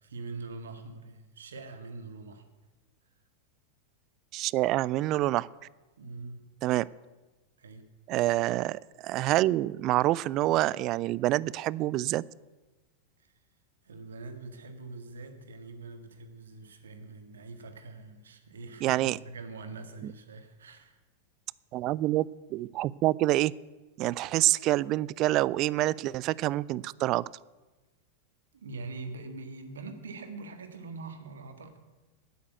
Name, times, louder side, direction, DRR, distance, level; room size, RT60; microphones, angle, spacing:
voice 1, 0.0-2.4 6.0-6.4 7.6-7.9 13.2-13.3 13.8-21.0 28.5-31.8, right 3 dB, 65° right, 7 dB, 1.6 m, -43 dB
voice 2, 4.3-5.5 6.6-6.9 8.1-12.2 18.8-19.2 21.7-23.5 24.0-27.2, right 16 dB, 40° right, 22 dB, 0.3 m, -27 dB
9.4 x 8.8 x 9.2 m, 1.2 s
figure-of-eight pair, 90°, 0 cm